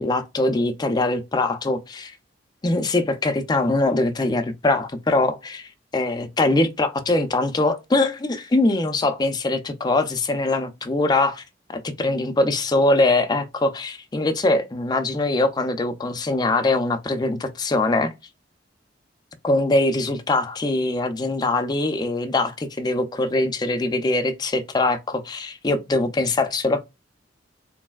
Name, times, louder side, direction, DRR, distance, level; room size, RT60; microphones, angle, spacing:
voice 1, 0.0-2.1 2.6-11.4 11.7-18.1 19.4-26.8, left 2 dB, 20° left, 0.4 m, -22 dB
3.1 x 2.6 x 2.2 m
head